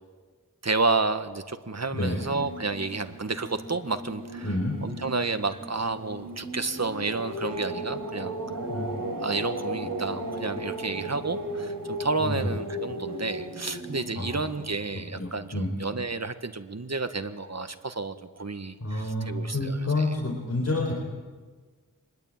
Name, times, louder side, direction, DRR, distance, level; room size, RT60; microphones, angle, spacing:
voice 1, 0.6-4.5 4.8-8.4 9.2-20.1, right 3 dB, 50° right, 9 dB, 1.6 m, -31 dB
voice 2, 1.9-2.3 4.4-4.7 8.7-8.9 12.2-12.5 14.1-14.4 15.2-15.7 18.8-20.9, left 2 dB, 45° left, 0 dB, 4.4 m, -28 dB
sound 1, 2.4-15.0, right 1 dB, 85° right, 4.3 m, -36 dB
25.5 x 21.0 x 9.0 m, 1.5 s
wide cardioid pair, 65°, 34 cm